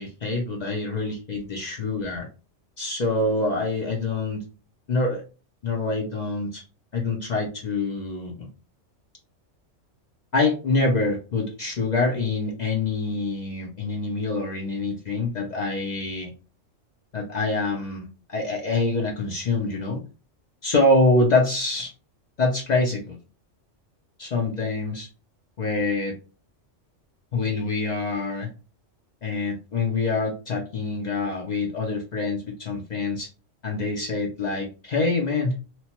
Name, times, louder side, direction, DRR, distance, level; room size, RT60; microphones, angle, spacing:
voice 1, 0.0-2.3 2.8-4.4 4.9-5.2 5.6-6.6 6.9-8.5 10.3-16.3 17.1-20.0 20.6-21.9 22.4-23.2 24.2-25.1 25.6-26.1 27.3-28.5 29.2-33.3 33.6-35.6, left 2 dB, 55° left, 0 dB, 0.5 m, -25 dB
2.9 x 2.1 x 2.8 m, 0.33 s
omnidirectional pair, 1.2 m